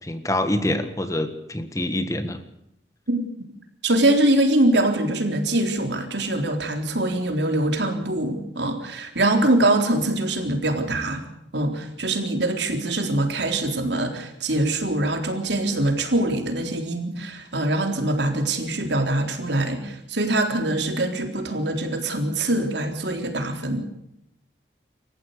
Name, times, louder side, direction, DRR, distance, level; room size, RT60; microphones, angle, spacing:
voice 1, 0.0-2.4, left 1 dB, 20° left, 10 dB, 1.5 m, -26 dB
voice 2, 3.8-11.2 11.5-23.8, right 1 dB, 80° right, 5 dB, 3.8 m, -23 dB
28.0 x 14.5 x 6.8 m, 0.79 s
head